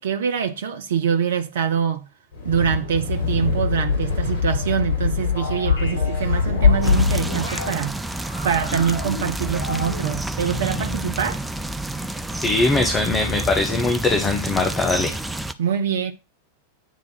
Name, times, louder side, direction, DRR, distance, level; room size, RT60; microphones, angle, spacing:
voice 1, 0.0-2.0 2.4-8.0 8.4-11.4 15.6-16.1, right 7 dB, 60° right, 0.6 m, -24 dB
Wind, 2.3-7.4, left 5 dB, 50° left, 4.9 m, -22 dB
sound 1, 5.3-7.7 8.2-10.1 10.4-11.0, left 2 dB, 70° left, 3.4 m, -34 dB
sound 2, 6.8-15.5, right 1 dB, 5° right, 0.5 m, -29 dB
voice 2, 12.4-15.1, left 3 dB, 20° left, 1.1 m, -21 dB
9.3 x 3.6 x 5.9 m
figure-of-eight pair, 90°, 0 cm